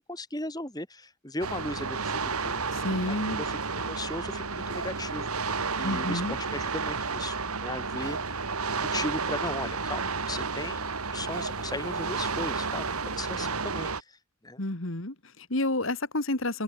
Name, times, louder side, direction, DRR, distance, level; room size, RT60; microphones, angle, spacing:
voice 1, 0.0-2.7 3.1-3.2 3.5-3.6 3.9-10.0 10.3-14.2 14.4-14.6, left 1 dB, 15° left, 5.3 m, -37 dB
sound 1, 1.4-14.0, right 4 dB, 85° right, 2.7 m, -31 dB
voice 2, 2.7-3.4 5.8-6.4 14.6-16.6, left 1 dB, 60° left, 2.4 m, -30 dB
head